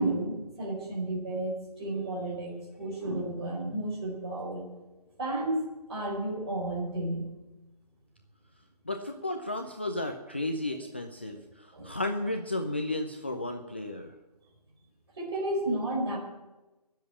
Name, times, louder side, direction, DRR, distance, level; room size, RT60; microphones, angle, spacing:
voice 1, 0.0-4.6 5.2-5.6 5.9-7.2 11.7-11.9 15.2-16.2, right 1 dB, 40° right, -2 dB, 4.5 m, -32 dB
voice 2, 8.9-14.1, left 2 dB, 15° left, 4 dB, 0.4 m, -33 dB
19.0 x 7.5 x 8.6 m, 1.1 s
figure-of-eight pair, 160°, 21 cm